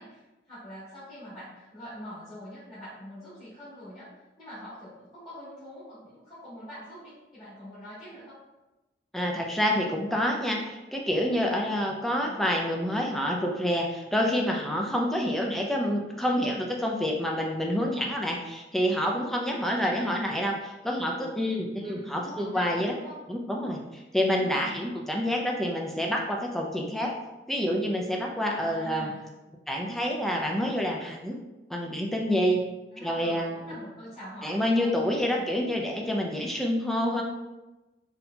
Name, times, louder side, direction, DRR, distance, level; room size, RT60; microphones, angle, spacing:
voice 1, 0.0-8.4 12.1-12.4 15.4-15.8 19.5-20.1 21.8-23.2 24.4-24.9 28.5-29.3 32.9-34.9 35.3-35.5, equal, 20° left, -14 dB, 1.2 m, -44 dB
voice 2, 9.1-22.9 23.3-27.1 27.5-29.1 29.7-31.4 31.7-32.7 33.0-33.8 34.4-37.2, equal, ahead, 0 dB, 0.3 m, -28 dB
4.1 x 2.7 x 2.2 m, 1.1 s
head